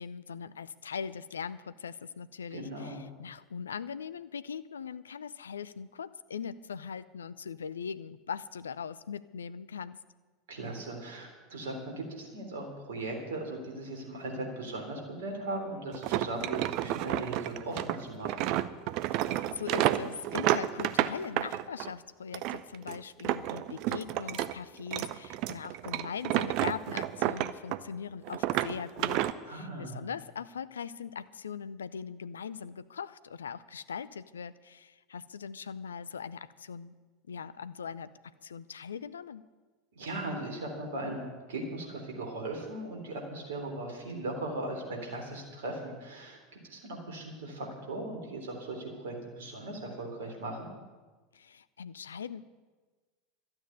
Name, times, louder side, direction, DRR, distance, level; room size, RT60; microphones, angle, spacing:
voice 1, 0.0-10.0 19.2-36.9 37.3-39.4 51.3-52.4, left 6 dB, 75° left, 15 dB, 0.5 m, -41 dB
voice 2, 2.5-3.0 10.5-18.5 29.4-30.0 39.9-50.7, right 2 dB, 65° right, 2 dB, 3.5 m, -38 dB
sound 1, 15.9-21.9 22.3-24.5 24.8-28.0 28.3-29.3, right 14 dB, 50° right, 0.6 m, -30 dB
12.5 x 8.8 x 9.5 m, 1.3 s
figure-of-eight pair, 80°, 0 cm